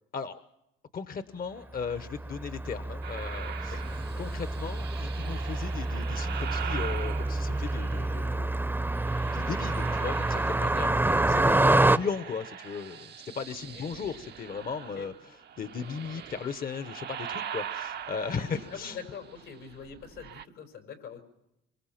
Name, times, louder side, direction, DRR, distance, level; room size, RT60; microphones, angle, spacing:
voice 1, 0.9-3.8 4.2-8.6 9.3-19.0, left 6 dB, 45° left, 11 dB, 1.1 m, -37 dB
Car passing by, 1.8-12.0, right 2 dB, 10° right, 0.7 m, -27 dB
sound 1, 3.0-8.3 8.9-11.1 11.4-20.5, right 9 dB, 55° right, 0.8 m, -42 dB
voice 2, 18.3-21.2, left 6 dB, 85° left, 5 dB, 4.8 m, -44 dB
26.0 x 24.5 x 5.9 m, 0.86 s
cardioid pair, 90°, 20 cm